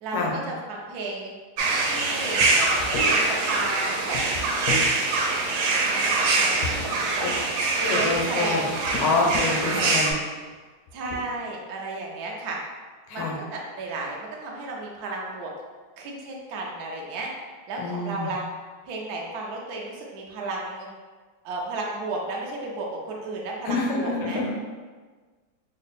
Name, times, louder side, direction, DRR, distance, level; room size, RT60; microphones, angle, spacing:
voice 1, 0.0-1.3 1.8-4.6 5.7-7.3 7.8-8.7 9.7-10.0 10.9-12.6 13.1-15.5 16.0-17.3 17.7-18.4 18.9-20.9 21.4-24.4, right 2 dB, 75° right, -1 dB, 0.9 m, -33 dB
sound 1, 1.6-10.1, right 3 dB, 90° right, 1.4 m, -24 dB
sound 2, 2.4-2.5 2.8-3.1 4.1-4.9 6.6-7.4 8.0-8.3 8.9-9.6 10.4-10.5 10.9-11.2, left 3 dB, 70° left, 1.0 m, -32 dB
voice 2, 7.9-8.7 9.0-10.2 13.1-13.4 17.8-18.3 23.6-24.5, left 3 dB, 85° left, -1 dB, 1.5 m, -26 dB
3.6 x 2.0 x 4.1 m, 1.4 s
omnidirectional pair, 2.2 m